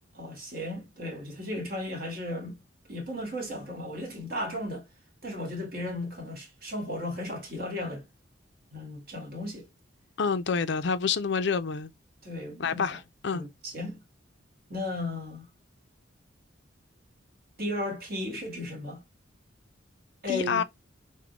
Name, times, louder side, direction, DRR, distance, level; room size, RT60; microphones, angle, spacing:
voice 1, 0.1-2.6 2.9-4.8 5.2-8.1 8.7-9.7 12.2-13.0 13.3-14.0 14.7-15.5 17.6-19.0 20.2-20.6, left 1 dB, 50° right, 2.1 m, -35 dB
voice 2, 10.2-11.9 12.6-13.5 20.3-20.6, left 5 dB, 60° left, 0.5 m, -28 dB
6.0 x 2.2 x 3.3 m
head